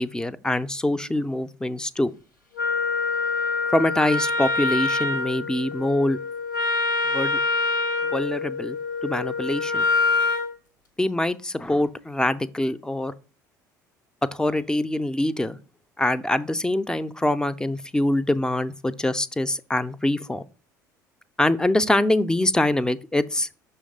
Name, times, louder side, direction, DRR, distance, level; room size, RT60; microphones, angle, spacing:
voice 1, 0.0-2.1 3.7-6.2 7.1-7.4 8.0-9.8 11.0-13.1 14.3-15.6 16.0-20.5 21.4-23.5, left 1 dB, 5° left, 0.4 m, -24 dB
Wind instrument woodwind instrument, 2.5-10.5, left 3 dB, 80° left, 0.9 m, -25 dB
6.3 x 3.2 x 5.1 m
figure-of-eight pair, 60°, 10 cm